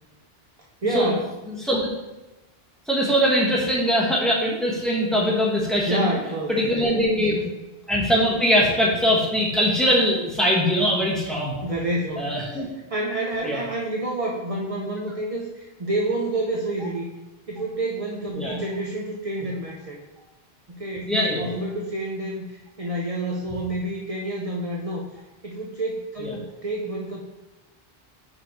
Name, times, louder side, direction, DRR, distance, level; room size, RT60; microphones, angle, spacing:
voice 1, 0.8-1.3 5.8-6.8 7.4-7.5 11.6-12.6 12.9-17.1 17.5-20.0 20.7-27.2, right 1 dB, 40° right, -1 dB, 0.7 m, -29 dB
voice 2, 1.5-1.8 2.9-6.1 6.5-7.4 7.9-11.6 12.2-12.7 13.4-13.6 18.3-18.6 21.1-21.5 26.2-26.3, equal, ahead, -4 dB, 1.4 m, -22 dB
5.3 x 5.2 x 4.4 m, 1.1 s
omnidirectional pair, 1.0 m